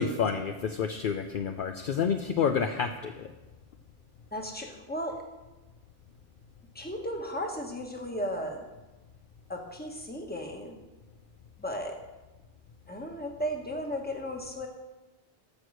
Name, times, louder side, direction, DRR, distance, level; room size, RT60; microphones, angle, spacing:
voice 1, 0.0-3.3, left 6 dB, 60° left, 6 dB, 0.7 m, -29 dB
voice 2, 4.3-5.2 6.7-8.6 9.5-10.7 11.6-12.0 12.9-14.7, equal, 10° left, 2 dB, 1.3 m, -35 dB
14.0 x 4.7 x 6.4 m, 1.1 s
omnidirectional pair, 1.1 m